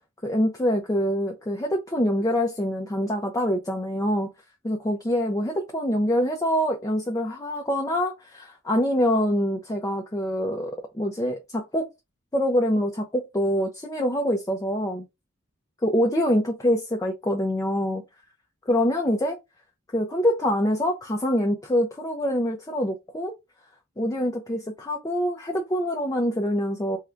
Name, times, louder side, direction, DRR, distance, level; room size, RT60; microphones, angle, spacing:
voice 1, 0.2-4.3 4.6-11.9 12.3-15.0 15.8-18.0 18.7-19.4 19.9-23.3 24.0-27.0, equal, 15° left, 0.5 m, -25 dB
3.7 x 2.2 x 4.4 m
head